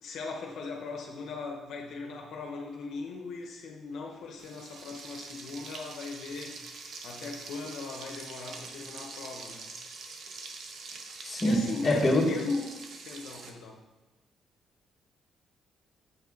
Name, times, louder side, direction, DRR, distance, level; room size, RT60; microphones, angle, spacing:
voice 1, 0.0-9.7 11.2-12.7 13.0-13.8, left 4 dB, 75° left, 1 dB, 0.9 m, -39 dB
Frying (food), 4.4-13.5, right 4 dB, 60° right, 0.9 m, -44 dB
voice 2, 11.2-12.2, left 1 dB, 25° left, -2 dB, 1.9 m, -25 dB
7.4 x 5.5 x 3.9 m, 1.1 s
cardioid pair, 90°, 0 cm